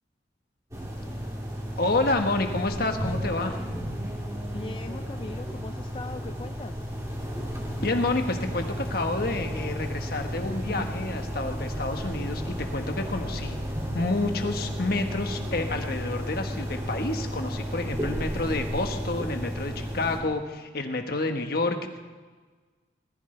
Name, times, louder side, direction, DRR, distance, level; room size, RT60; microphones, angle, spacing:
sound 1, 0.7-20.2, equal, 15° right, 2.5 m, -33 dB
voice 1, 1.8-3.6 7.8-13.6 13.9-22.0, left 2 dB, 55° left, 5 dB, 1.4 m, -29 dB
voice 2, 4.5-6.8, left 2 dB, 25° left, 8 dB, 0.3 m, -40 dB
19.5 x 14.5 x 3.4 m, 1.4 s
head